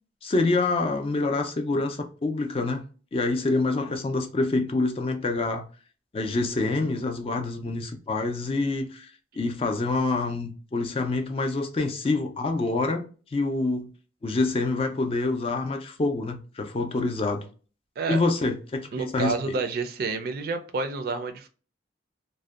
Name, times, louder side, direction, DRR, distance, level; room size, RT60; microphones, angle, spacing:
voice 1, 0.2-2.8 3.1-5.6 6.1-9.1 9.4-13.0 13.3-13.9 14.2-17.4 18.1-19.6, left 3 dB, 30° left, 0.3 m, -26 dB
voice 2, 18.9-21.5, right 4 dB, 55° right, 0.3 m, -29 dB
2.6 x 2.1 x 2.3 m
head